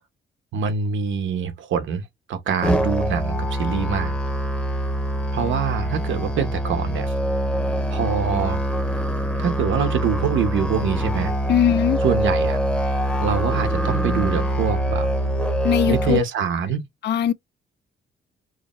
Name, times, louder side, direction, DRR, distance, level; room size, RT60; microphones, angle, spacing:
voice 1, 0.5-2.0 2.3-4.2 5.3-7.1 7.9-8.6 9.4-11.3 12.0-12.6 13.2-15.1 15.9-16.8, right 7 dB, 80° right, 1.1 m, -24 dB
Musical instrument, 2.6-16.2, equal, 5° left, 0.7 m, -24 dB
voice 2, 11.5-12.0 15.6-16.2 17.0-17.3, left 10 dB, 60° left, 0.5 m, -20 dB
4.9 x 2.2 x 3.1 m
cardioid pair, 145°, 19 cm